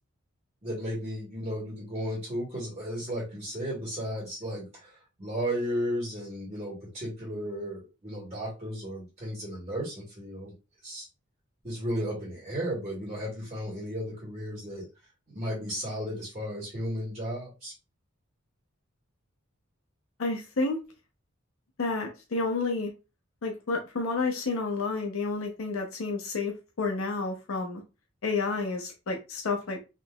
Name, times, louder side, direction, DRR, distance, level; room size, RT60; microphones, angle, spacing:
voice 1, 0.6-10.5 10.8-11.1 11.6-14.8 15.3-17.7, equal, 35° right, -7 dB, 1.6 m, -34 dB
voice 2, 20.2-20.8 21.8-22.9 23.4-27.8 28.2-29.8, left 3 dB, 85° left, 3 dB, 0.7 m, -30 dB
3.6 x 2.9 x 2.3 m, 0.28 s
head